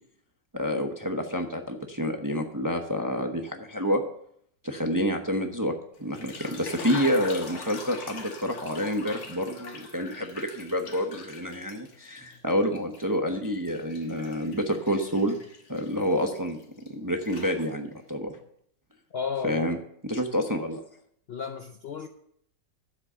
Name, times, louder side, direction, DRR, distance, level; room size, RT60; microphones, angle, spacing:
voice 1, 0.5-4.0 4.6-5.7 6.0-15.4 15.7-16.6 16.9-18.4 19.4-19.8 20.0-20.8, equal, 20° right, 4 dB, 0.5 m, -28 dB
sound 1, 6.0-12.4 12.8-16.9 17.2-18.0, left 4 dB, 55° left, 1.9 m, -43 dB
voice 2, 19.1-19.7 21.3-22.1, left 6 dB, 85° left, 6 dB, 0.5 m, -33 dB
10.5 x 7.6 x 6.7 m, 0.69 s
omnidirectional pair, 1.9 m